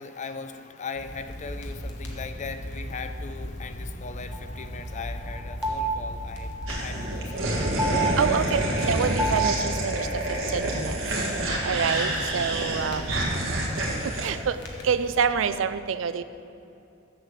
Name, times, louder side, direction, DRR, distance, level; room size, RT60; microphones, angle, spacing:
voice 1, 0.0-7.6 7.9-8.3, left 4 dB, 40° left, 9 dB, 0.5 m, -39 dB
sound 1, 0.9-15.1, equal, 60° left, 1.4 m, -38 dB
sound 2, 4.3-9.6, right 2 dB, 5° right, 1.3 m, -31 dB
sound 3, 6.7-14.3, right 1 dB, 90° right, 1.8 m, -28 dB
voice 2, 8.2-10.0 10.5-11.0 11.6-13.1 14.2-14.6 14.8-16.2, right 6 dB, 70° right, 13 dB, 0.4 m, -26 dB
7.6 x 7.5 x 6.6 m, 2.8 s
head